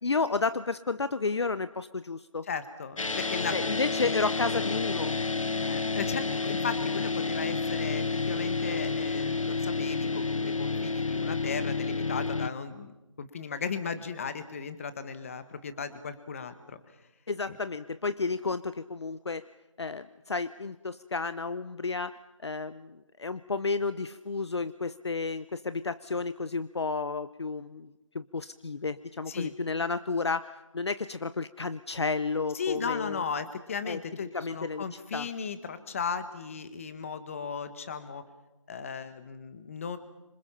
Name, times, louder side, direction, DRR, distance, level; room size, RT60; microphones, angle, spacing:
voice 1, 0.0-2.5 3.5-5.2 17.3-19.4 19.8-33.2 33.9-34.0 34.3-34.8 35.1-35.3, left 4 dB, 55° left, 14 dB, 0.8 m, -32 dB
voice 2, 2.5-3.6 5.6-16.8 17.5-17.6 29.3-29.5 32.5-38.2 38.7-40.0, left 6 dB, 25° left, 11 dB, 1.5 m, -36 dB
sound 1, 3.0-12.5, left 3 dB, 75° left, 1.3 m, -30 dB
27.5 x 26.0 x 5.7 m, 1.0 s
figure-of-eight pair, 160°, 17 cm